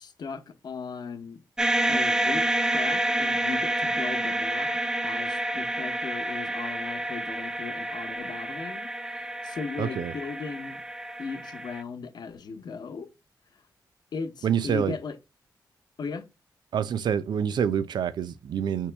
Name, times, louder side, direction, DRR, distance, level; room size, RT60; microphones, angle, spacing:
voice 1, 0.0-1.4 1.9-4.7 5.0-10.8 11.2-13.1 13.5-13.6 14.1-15.2 16.0-16.2, left 5 dB, 75° left, 0.9 m, -37 dB
sound 1, 1.6-11.8, right 1 dB, 10° right, 0.4 m, -29 dB
voice 2, 9.8-10.1 14.4-14.9 16.7-18.9, right 8 dB, 80° right, 0.4 m, -27 dB
4.4 x 2.9 x 3.3 m
cardioid pair, 90°, 7 cm